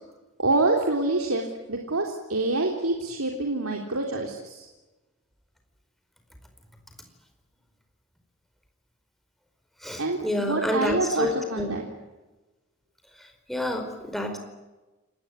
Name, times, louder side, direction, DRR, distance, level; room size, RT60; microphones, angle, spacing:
voice 1, 0.4-4.7 10.0-11.8, right 2 dB, 80° right, 2 dB, 3.5 m, -26 dB
voice 2, 9.8-11.7 13.5-14.4, left 1 dB, ahead, 4 dB, 4.8 m, -29 dB
28.5 x 20.5 x 9.5 m, 1.1 s
head